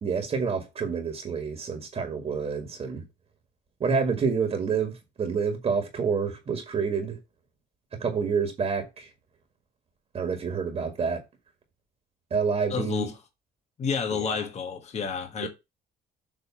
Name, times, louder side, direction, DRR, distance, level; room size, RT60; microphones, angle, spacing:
voice 1, 0.0-3.0 3.8-4.9 5.2-7.2 8.0-9.1 10.1-11.2 12.3-13.1 14.1-14.4 15.4-15.5, right 5 dB, 40° right, 1.8 m, -28 dB
voice 2, 12.7-13.1 13.8-15.5, left 6 dB, 40° left, 1.4 m, -30 dB
7.5 x 3.2 x 5.8 m
cardioid pair, 110°, 17 cm